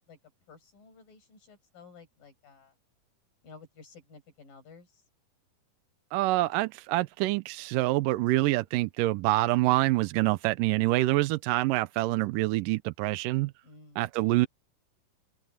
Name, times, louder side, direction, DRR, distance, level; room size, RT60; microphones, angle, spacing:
voice 1, 0.5-2.7 3.4-5.0 13.6-14.0, left 4 dB, 90° left, 7.8 m, -53 dB
voice 2, 6.1-13.5 14.0-14.5, right 18 dB, 80° right, 2.3 m, -26 dB
open air
omnidirectional pair, 3.8 m